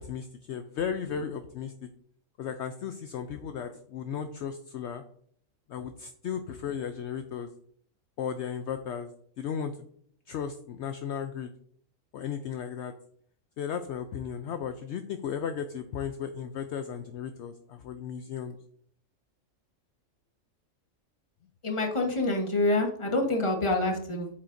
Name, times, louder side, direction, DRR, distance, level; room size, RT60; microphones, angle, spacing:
voice 1, 0.0-1.7 2.4-5.0 5.7-7.5 8.2-9.1 9.4-9.7 10.3-11.5 12.1-12.9 13.6-18.6, left 7 dB, 65° left, 8 dB, 0.8 m, -35 dB
voice 2, 21.6-24.4, left 2 dB, 25° left, 2 dB, 1.2 m, -27 dB
8.6 x 7.3 x 2.6 m, 0.63 s
omnidirectional pair, 1.4 m